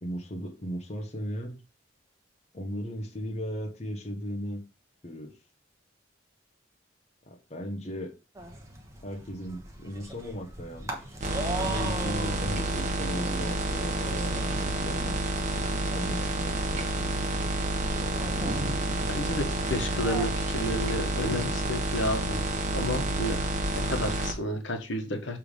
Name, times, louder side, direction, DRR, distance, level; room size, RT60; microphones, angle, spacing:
voice 1, 0.0-1.6 2.5-4.6 5.0-5.4 7.2-8.1 9.0-11.1 11.6-17.2, equal, 35° left, 3 dB, 1.0 m, -37 dB
sound 1, 8.3-21.6, right 1 dB, 15° right, 1.2 m, -41 dB
sound 2, 11.2-24.3, right 1 dB, 40° right, 1.0 m, -29 dB
voice 2, 19.1-22.4 22.7-25.4, equal, 80° left, 5 dB, 1.3 m, -31 dB
6.9 x 3.5 x 5.0 m, 0.30 s
head